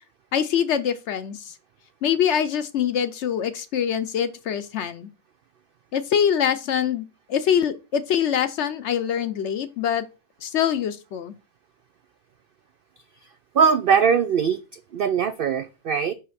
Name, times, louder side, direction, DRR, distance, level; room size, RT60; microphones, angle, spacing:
voice 1, 0.3-1.5 2.0-5.1 5.9-10.1 10.4-11.3, left 8 dB, 65° left, 0.8 m, -24 dB
voice 2, 13.5-16.1, right 6 dB, 90° right, 0.4 m, -21 dB
5.7 x 5.0 x 4.2 m
omnidirectional pair, 1.5 m